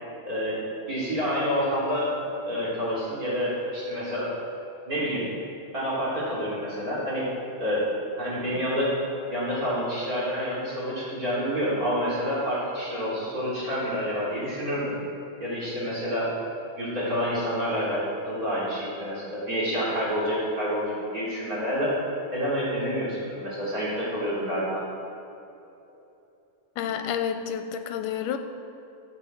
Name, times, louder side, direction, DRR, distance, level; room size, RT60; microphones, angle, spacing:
voice 1, 0.2-2.2 2.5-4.3 4.9-5.3 5.7-7.3 7.6-7.9 8.2-8.9 9.3-14.9 15.4-16.3 16.8-21.9 22.3-24.8, equal, 25° right, -8 dB, 4.0 m, -28 dB
voice 2, 26.8-28.4, left 8 dB, 85° left, 8 dB, 2.3 m, -29 dB
11.5 x 7.7 x 7.6 m, 2.7 s
omnidirectional pair, 3.6 m